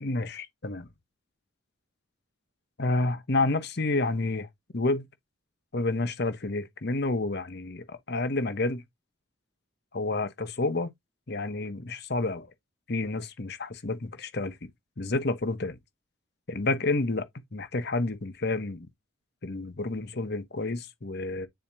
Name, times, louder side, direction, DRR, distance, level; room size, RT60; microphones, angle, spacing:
voice 1, 0.0-0.9 2.8-4.5 4.7-5.1 5.7-8.8 9.9-10.9 11.3-12.5 12.9-14.7 15.0-15.8 16.5-18.9 19.4-21.5, left 2 dB, 50° left, 1.0 m, -29 dB
9.1 x 4.2 x 2.7 m
head